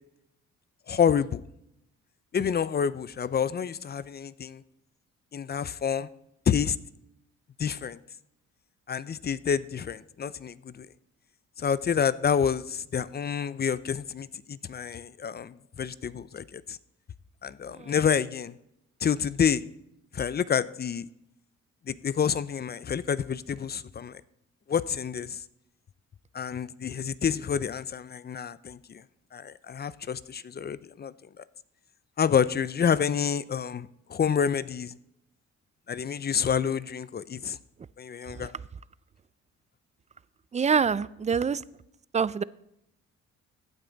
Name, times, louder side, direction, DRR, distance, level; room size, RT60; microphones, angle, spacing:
voice 1, 0.9-1.4 2.3-4.6 5.3-6.1 6.5-6.8 7.6-8.0 8.9-10.9 11.6-16.8 17.4-18.6 19.0-19.6 20.1-21.1 21.9-24.2 24.7-25.4 26.3-29.0 29.3-31.4 32.2-34.9 35.9-37.6 38.0-38.5, left 7 dB, 35° left, 17 dB, 0.5 m, -28 dB
voice 2, 40.5-41.6 42.1-42.4, right 6 dB, 25° right, 19 dB, 0.4 m, -25 dB
15.5 x 9.2 x 4.0 m, 0.80 s
cardioid pair, 90°, 30 cm